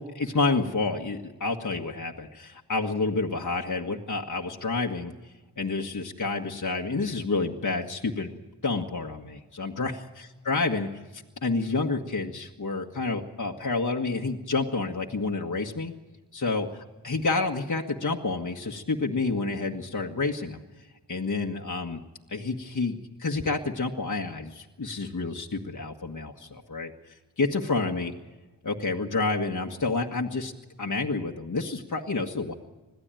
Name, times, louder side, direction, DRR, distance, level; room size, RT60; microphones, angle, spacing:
voice 1, 0.0-5.1 5.6-8.4 8.6-15.9 16.3-16.7 17.0-20.6 21.1-22.0 22.3-26.9 27.4-28.1 28.6-30.5 30.8-32.5, left 3 dB, 45° left, 1 dB, 1.7 m, -29 dB
21.5 x 14.5 x 9.1 m, 1.2 s
cardioid pair, 40°, 42 cm